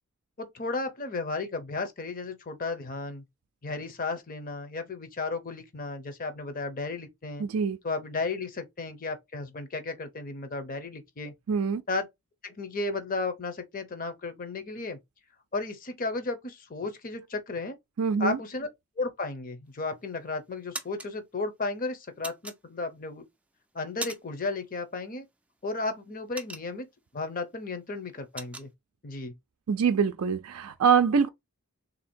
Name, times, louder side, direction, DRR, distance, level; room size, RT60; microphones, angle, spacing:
voice 1, 0.4-3.2 3.6-7.5 7.8-11.3 11.9-12.1 12.4-15.0 15.5-17.8 18.2-18.7 19.0-23.2 23.7-25.2 25.6-26.9 27.1-28.7 29.0-29.3, left 3 dB, 40° left, 0.8 m, -34 dB
voice 2, 7.4-7.8 11.5-11.8 18.0-18.4 29.7-31.3, right 6 dB, 70° right, 0.4 m, -24 dB
sound 1, 19.7-20.1 20.5-21.1 22.2-23.1 23.5-24.5 24.8-25.0 25.4-27.1 27.5-27.6 27.9-28.7, right 2 dB, 5° right, 0.4 m, -39 dB
3.4 x 2.8 x 4.3 m
head